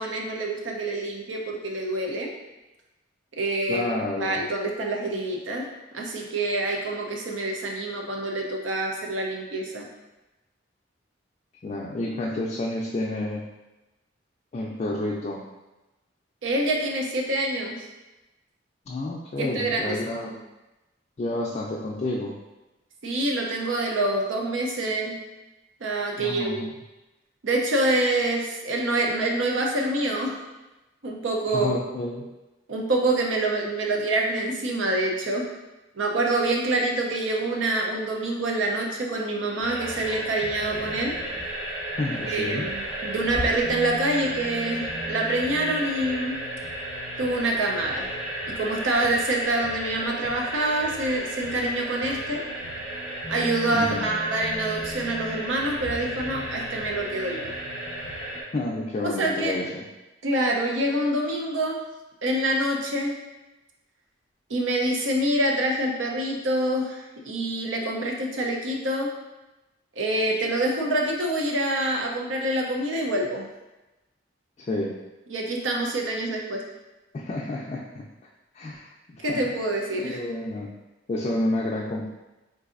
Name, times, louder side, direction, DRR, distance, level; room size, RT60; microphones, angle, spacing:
voice 1, 0.0-2.3 3.4-3.9 4.2-5.7 5.9-9.9 16.4-17.9 19.4-20.0 20.3-20.4 23.0-25.2 25.8-26.6 27.4-30.3 31.0-31.8 32.7-35.5 35.9-41.1 42.3-46.4 47.2-48.1 48.5-52.4 53.3-57.5 59.2-59.5 60.2-61.8 62.2-63.2 64.5-69.1 70.0-73.5 75.3-76.6 79.2-80.2, right 1 dB, 85° right, 0 dB, 0.6 m, -26 dB
voice 2, 3.7-4.4 11.6-13.4 14.5-15.4 18.9-20.3 21.2-22.3 26.2-26.7 31.5-32.3 42.0-42.7 53.7-54.0 58.5-59.8 74.6-74.9 77.1-78.0 78.5-79.4 80.0-80.7 81.1-82.1, left 1 dB, 35° left, -3 dB, 0.3 m, -30 dB
sound 1, 39.6-58.4, right 1 dB, 35° right, 1.3 m, -33 dB
3.9 x 2.6 x 2.5 m, 1.0 s
head